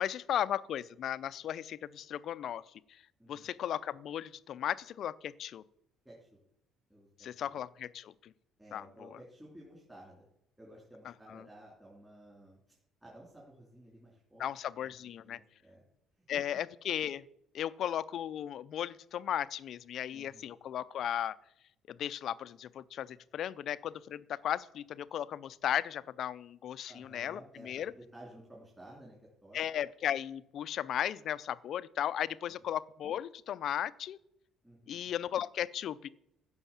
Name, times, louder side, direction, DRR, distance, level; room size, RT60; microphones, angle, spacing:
voice 1, 0.0-2.6 3.3-5.6 7.2-8.3 8.7-9.2 11.3-11.4 14.4-15.4 16.3-17.2 17.5-21.4 21.9-27.9 29.5-34.2 34.9-36.1, left 10 dB, 45° left, 17 dB, 0.5 m, -36 dB
voice 2, 3.2-3.5 6.0-6.3 6.9-7.5 8.6-10.2 10.6-12.7 13.0-15.8 16.2-16.6 20.1-20.5 26.9-29.6 32.5-32.6 34.6-35.1, right 1 dB, 5° right, -4 dB, 3.2 m, -54 dB
15.5 x 6.3 x 7.3 m, 0.77 s
cardioid pair, 170°, 0 cm